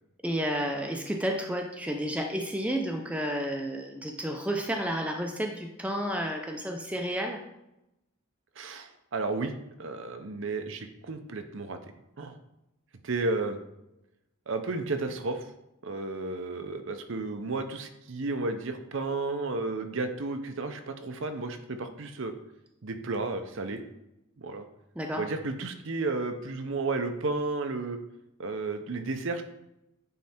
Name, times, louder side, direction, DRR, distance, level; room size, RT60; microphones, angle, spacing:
voice 1, 0.2-7.4 25.0-25.3, equal, 5° right, 3 dB, 0.5 m, -31 dB
voice 2, 8.6-9.5 9.8-11.8 12.2-12.4 13.0-13.6 14.5-15.4 15.8-22.3 22.8-23.8 24.4-24.6 25.2-28.0 28.4-29.4, right 3 dB, 55° right, 8 dB, 0.6 m, -32 dB
9.3 x 3.3 x 4.3 m, 0.89 s
head